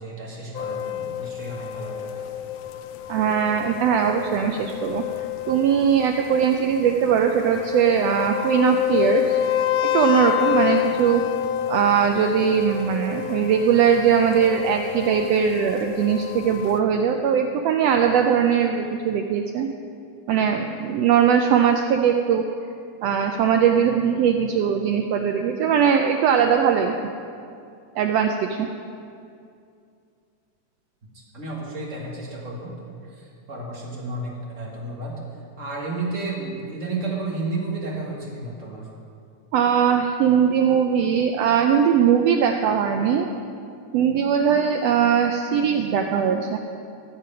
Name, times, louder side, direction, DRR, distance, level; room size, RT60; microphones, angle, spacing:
voice 1, 0.0-2.2 31.1-35.2 35.6-38.9, right 2 dB, 30° right, -3 dB, 1.5 m, -32 dB
sound 1, 0.5-16.8, left 11 dB, 85° left, 1.4 m, -28 dB
voice 2, 3.1-5.0 5.5-9.4 9.9-11.2 11.7-19.7 20.3-22.4 23.0-27.1 28.0-28.7 39.5-43.3 43.9-46.6, right 7 dB, 90° right, 4 dB, 1.4 m, -20 dB
14.0 x 7.7 x 5.7 m, 2.4 s
omnidirectional pair, 3.5 m